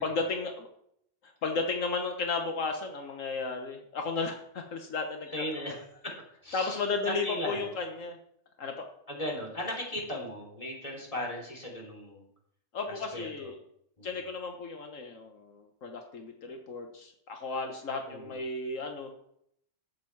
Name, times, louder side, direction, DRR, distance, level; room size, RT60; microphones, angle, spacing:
voice 1, 0.0-0.7 1.2-5.3 5.6-5.8 6.5-8.2 8.6-8.8 12.7-13.6 14.0-19.1, left 4 dB, 80° left, 4 dB, 1.5 m, -34 dB
voice 2, 5.3-6.1 6.4-7.7 9.1-12.2 12.9-13.5 14.0-14.1 18.0-18.4, left 1 dB, 25° left, -2 dB, 3.1 m, -37 dB
12.0 x 8.3 x 4.6 m, 0.72 s
omnidirectional pair, 1.3 m